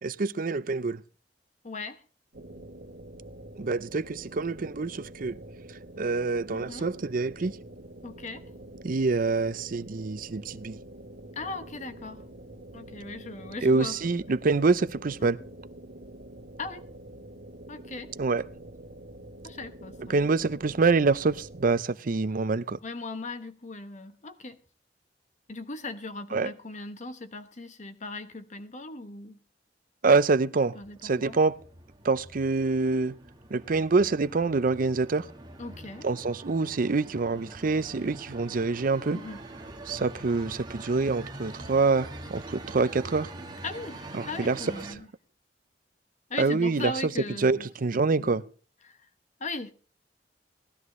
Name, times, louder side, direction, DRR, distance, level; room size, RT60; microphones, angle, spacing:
voice 1, 0.0-1.0 3.6-5.4 5.7-7.6 8.8-10.8 13.6-15.4 18.2-18.5 20.1-22.8 26.3-26.5 30.0-30.8 31.0-31.6 32.0-33.2 33.5-35.3 36.0-39.2 39.9-43.4 44.1-45.0 46.4-46.9 47.4-48.5, right 3 dB, 50° right, 0.6 m, -26 dB
voice 2, 1.6-2.0 6.5-6.9 8.0-8.4 11.3-12.2 12.7-14.0 15.2-15.3 16.6-16.9 17.7-18.1 19.4-20.3 22.8-24.6 25.5-29.4 30.7-31.4 35.6-36.1 39.1-39.4 43.6-45.1 46.3-47.7 48.2-48.4 48.8-49.1 49.4-49.7, left 3 dB, 45° left, 1.1 m, -38 dB
sound 1, 2.3-21.8, right 1 dB, 70° right, 1.8 m, -46 dB
sound 2, 30.8-44.9, right 1 dB, 25° right, 1.4 m, -44 dB
19.0 x 12.5 x 3.1 m
head